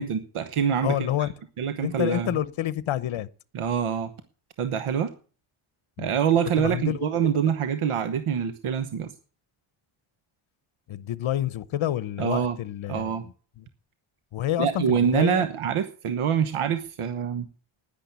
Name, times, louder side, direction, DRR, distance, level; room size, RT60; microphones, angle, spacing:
voice 1, 0.0-1.3 1.6-2.3 3.5-4.1 4.6-5.1 6.0-9.1 12.2-12.6 12.9-13.2 14.6-17.5, right 8 dB, 80° right, 1.2 m, -25 dB
voice 2, 0.8-1.3 1.8-3.3 6.0-6.1 6.6-7.1 10.9-13.1 14.3-15.5, left 12 dB, 70° left, 0.8 m, -28 dB
10.5 x 10.5 x 8.2 m
wide cardioid pair, 150°, 50 cm